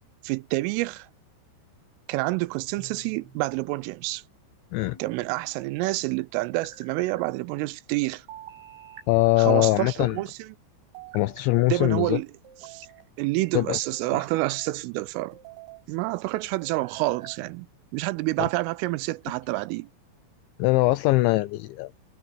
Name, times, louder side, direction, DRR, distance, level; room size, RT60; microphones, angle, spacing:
voice 1, 0.2-1.1 2.1-4.2 5.0-8.3 9.4-10.5 11.7-12.3 12.6-12.9 13.2-15.4 15.9-17.7 17.9-19.9, right 21 dB, 85° right, 3.1 m, -28 dB
sound 1, 2.8-3.5 4.8-5.6 6.4-7.2 8.3-9.1 9.7-10.3 10.9-11.8 12.4-13.1 13.8-14.8 15.3-15.9 16.6-17.4, right 9 dB, 60° right, 8.7 m, -47 dB
voice 2, 9.1-10.2 11.1-12.2 13.5-13.8 18.4-18.5 20.6-21.9, left 20 dB, 85° left, 2.7 m, -22 dB
omnidirectional pair, 5.9 m